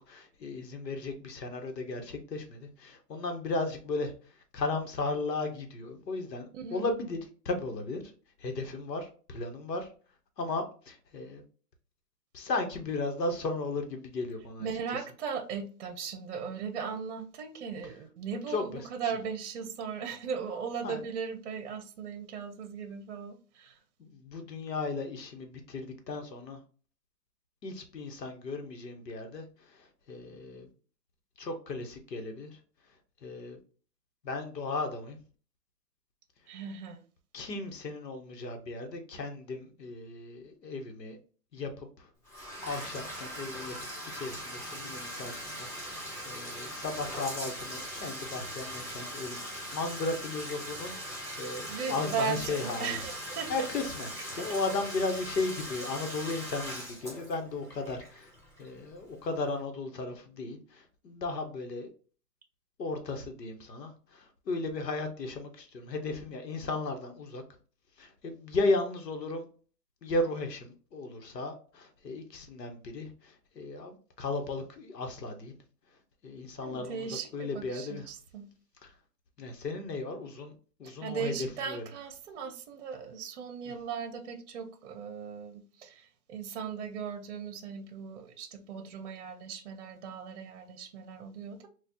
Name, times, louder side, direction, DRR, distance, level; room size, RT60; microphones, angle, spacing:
voice 1, 0.0-7.2 7.4-8.0 8.4-9.9 10.4-11.4 12.3-14.7 18.5-19.1 20.8-21.0 24.0-26.6 27.6-30.7 31.4-32.6 33.2-33.6 34.2-35.2 37.3-41.2 41.5-42.1 42.3-43.9 44.1-53.1 53.5-58.3 58.6-61.9 62.8-67.4 68.0-69.4 70.0-75.5 76.2-78.1 78.8-78.9 79.4-80.5 80.8-81.8 83.7-83.8, left 3 dB, 85° left, 1.1 m, -35 dB
voice 2, 6.5-6.8 14.6-23.8 36.5-37.0 51.7-53.7 76.6-78.5 80.8-91.7, right 6 dB, 45° right, 0.7 m, -38 dB
Bathtub (filling or washing), 42.2-59.0, equal, 5° left, 0.9 m, -40 dB
4.2 x 2.4 x 2.8 m
hypercardioid pair, 150°, 48 cm